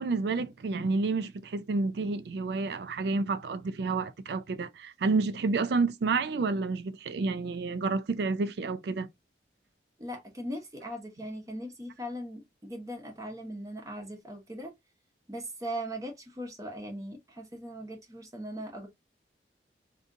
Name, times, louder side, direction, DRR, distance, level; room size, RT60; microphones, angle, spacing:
voice 1, 0.0-9.1, right 3 dB, 65° right, 0.4 m, -29 dB
voice 2, 10.0-14.7 15.3-18.9, equal, 20° right, 0.7 m, -39 dB
3.6 x 2.7 x 2.5 m
head